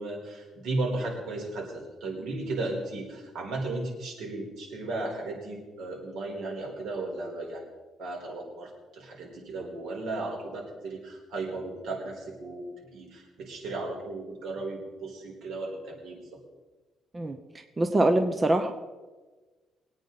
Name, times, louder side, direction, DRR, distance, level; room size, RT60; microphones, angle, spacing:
voice 1, 0.0-7.7 8.0-16.2, right 2 dB, 80° right, -1 dB, 4.4 m, -35 dB
voice 2, 17.8-18.7, right 1 dB, 20° right, 6 dB, 0.7 m, -23 dB
23.0 x 9.1 x 4.1 m, 1.3 s
cardioid pair, 160°, 0 cm